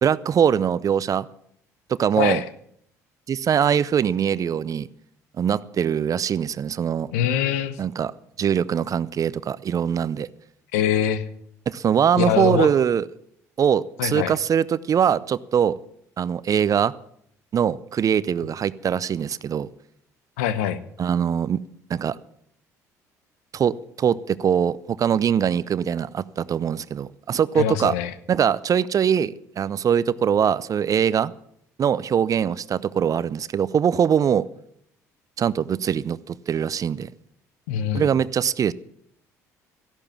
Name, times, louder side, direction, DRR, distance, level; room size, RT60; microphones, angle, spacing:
voice 1, 0.0-1.3 1.9-2.4 3.3-4.9 5.4-7.1 7.8-8.1 8.4-10.3 11.7-13.0 13.6-15.8 16.2-16.9 17.5-19.7 21.0-21.6 21.9-22.2 23.5-27.9 28.3-31.3 31.8-34.4 35.4-37.1 37.9-38.7, right 8 dB, 40° right, 19 dB, 0.6 m, -22 dB
voice 2, 7.1-7.8 10.7-11.2 12.2-12.7 14.0-14.3 20.4-20.8 27.6-28.1 37.7-38.1, left 9 dB, 75° left, 14 dB, 0.9 m, -23 dB
13.5 x 11.5 x 7.3 m, 0.69 s
hypercardioid pair, 55°, 8 cm